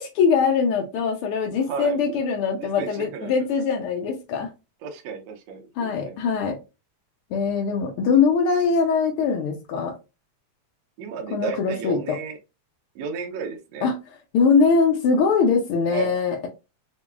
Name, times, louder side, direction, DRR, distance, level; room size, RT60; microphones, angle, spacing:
voice 1, 0.0-4.5 5.8-6.6 7.3-10.0 11.3-12.2 13.8-14.0 14.3-16.5, left 5 dB, 80° left, 1.2 m, -22 dB
voice 2, 1.6-2.0 2.6-3.3 4.8-6.2 11.0-12.4 13.0-13.9 15.9-16.2, right 6 dB, 70° right, 1.8 m, -33 dB
5.5 x 2.3 x 2.4 m
omnidirectional pair, 3.3 m